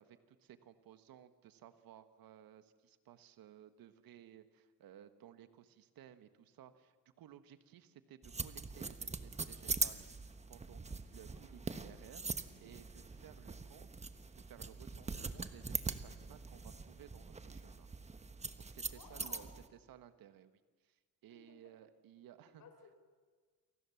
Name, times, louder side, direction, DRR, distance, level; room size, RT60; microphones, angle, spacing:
voice 1, 0.0-10.0 10.5-12.3 12.6-13.9 14.4-17.9 18.6-19.5 19.9-20.5 20.8-22.6, right 10 dB, 70° right, 10 dB, 1.6 m, -58 dB
sound 1, 8.2-19.7, right 4 dB, 20° right, 1.2 m, -42 dB
voice 2, 11.3-11.8 13.1-13.2 18.9-19.5 21.3-21.6 22.6-23.0, left 5 dB, 55° left, 6 dB, 5.5 m, -59 dB
29.0 x 24.0 x 7.2 m, 1.5 s
cardioid pair, 120°, 36 cm